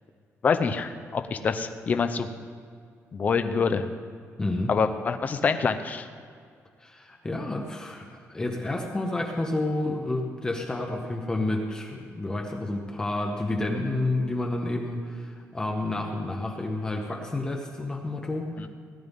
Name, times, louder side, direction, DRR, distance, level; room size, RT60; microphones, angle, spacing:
voice 1, 0.4-2.3 3.1-3.9 4.7-6.1 18.6-18.7, left 5 dB, 30° left, 8 dB, 0.6 m, -26 dB
voice 2, 4.4-4.7 6.8-18.7, left 2 dB, 15° left, 1 dB, 0.9 m, -30 dB
17.5 x 10.5 x 3.6 m, 2.2 s
cardioid pair, 170°, 5 cm